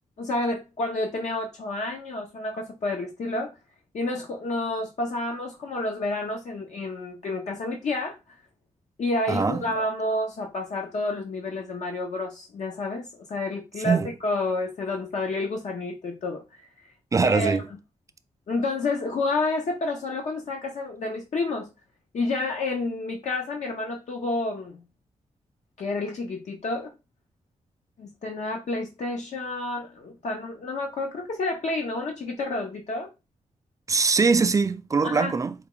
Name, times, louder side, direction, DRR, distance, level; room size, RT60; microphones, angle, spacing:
voice 1, 0.2-3.5 3.9-8.4 9.0-16.6 17.2-17.6 18.5-21.7 22.1-24.8 25.8-26.9 28.0-33.1 35.0-35.3, left 2 dB, 65° left, 0.9 m, -29 dB
voice 2, 9.3-9.6 13.8-14.1 17.1-17.7 33.9-35.5, right 4 dB, 25° right, 0.4 m, -22 dB
4.6 x 2.4 x 3.7 m
wide cardioid pair, 110°, 13 cm